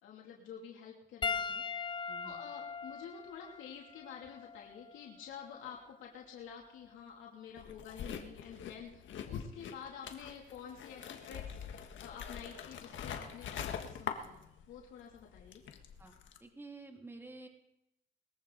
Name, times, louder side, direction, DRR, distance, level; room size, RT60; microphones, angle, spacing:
voice 1, 0.0-15.6, left 7 dB, 90° left, -2 dB, 2.8 m, -49 dB
Piano, 1.2-5.9 6.8-7.0 8.9-9.0, left 5 dB, 25° left, 0.6 m, -41 dB
voice 2, 2.1-2.4 16.0-16.1 16.4-17.5, right 3 dB, 10° right, 3 dB, 2.5 m, -50 dB
sound 1, 7.6-14.9 15.1-16.4, left 8 dB, 70° left, 1.6 m, -44 dB
21.5 x 14.5 x 4.0 m, 0.84 s
cardioid pair, 90°, 20 cm